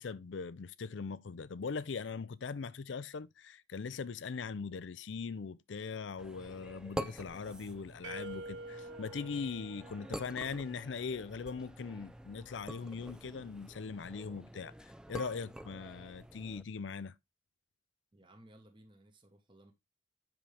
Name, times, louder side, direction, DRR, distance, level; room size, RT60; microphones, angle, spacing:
voice 1, 0.0-17.1, left 5 dB, 75° left, 0.5 m, -40 dB
sound 1, 6.2-16.6, right 1 dB, 5° right, 0.4 m, -47 dB
sound 2, 8.0-10.9, right 2 dB, 75° right, 1.0 m, -47 dB
voice 2, 18.1-19.7, right 1 dB, 25° right, 1.3 m, -59 dB
7.7 x 6.2 x 3.4 m
head